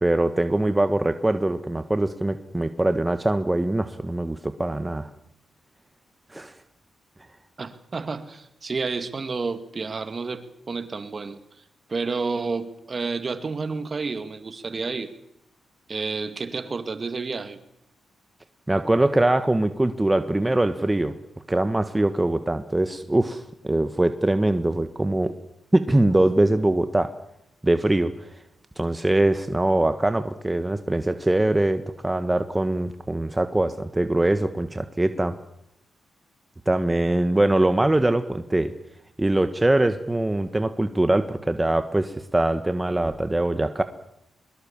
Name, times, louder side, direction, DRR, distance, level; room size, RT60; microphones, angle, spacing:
voice 1, 0.0-5.1 6.3-6.5 18.7-21.1 21.5-25.3 25.7-27.1 27.6-28.1 28.8-35.3 36.7-38.7 39.2-43.8, right 1 dB, 15° right, 10 dB, 1.4 m, -22 dB
voice 2, 7.6-11.4 11.9-15.1 15.9-17.6, right 4 dB, 40° right, 11 dB, 2.2 m, -30 dB
22.5 x 22.0 x 7.3 m, 0.81 s
cardioid pair, 65°, 0 cm